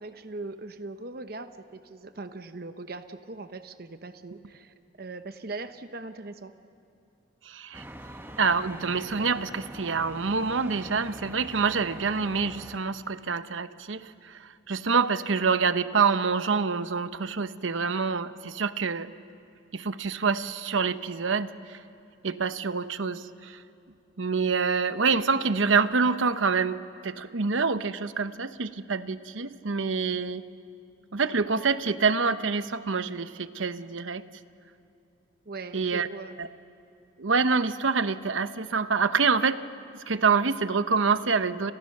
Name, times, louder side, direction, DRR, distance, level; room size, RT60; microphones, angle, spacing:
voice 1, 0.0-6.5 35.5-36.4, right 3 dB, 50° right, 9 dB, 0.9 m, -40 dB
voice 2, 7.5-7.8 8.4-14.4 14.7-19.1 19.7-21.8 22.2-23.6 24.2-26.8 27.0-30.4 31.1-34.2 35.7-36.1 36.4-36.5 37.2-39.6 40.1-41.7, right 5 dB, 80° right, 12 dB, 0.9 m, -26 dB
sound 1, 7.7-12.8, right 1 dB, 10° right, 1.1 m, -44 dB
30.0 x 30.0 x 6.6 m, 2.7 s
head